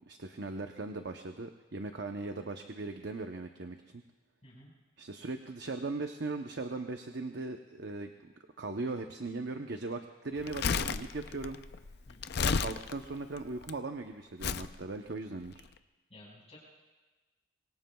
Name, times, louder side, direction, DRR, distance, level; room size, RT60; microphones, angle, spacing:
voice 1, 0.1-4.0 5.0-8.1 8.6-11.6 12.4-15.7, right 3 dB, 60° right, 5 dB, 0.8 m, -39 dB
Crumpling crinkling, 10.4-13.7 14.4-14.7 15.5-15.6, left 5 dB, 60° left, 0.5 m, -33 dB
voice 2, 12.1-12.4 16.1-16.6, left 1 dB, 35° left, -5 dB, 4.9 m, -54 dB
26.0 x 23.0 x 2.3 m, 1.2 s
head